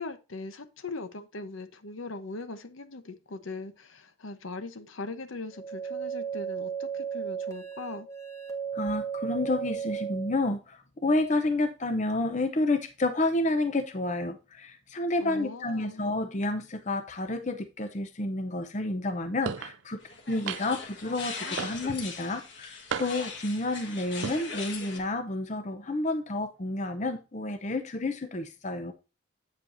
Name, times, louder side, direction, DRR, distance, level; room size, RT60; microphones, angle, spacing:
voice 1, 0.0-8.1 15.2-16.0, left 3 dB, 75° left, 0.9 m, -40 dB
sound 1, 5.5-10.5, right 7 dB, 15° left, 1.5 m, -35 dB
voice 2, 8.7-28.9, left 2 dB, 35° left, 0.7 m, -30 dB
sound 2, 19.5-19.8 20.5-20.9 21.6-22.1 22.9-23.4 24.1-24.4, right 7 dB, 65° right, 0.4 m, -34 dB
sound 3, 20.0-25.0, left 4 dB, 60° left, 1.6 m, -40 dB
8.5 x 7.4 x 2.6 m
head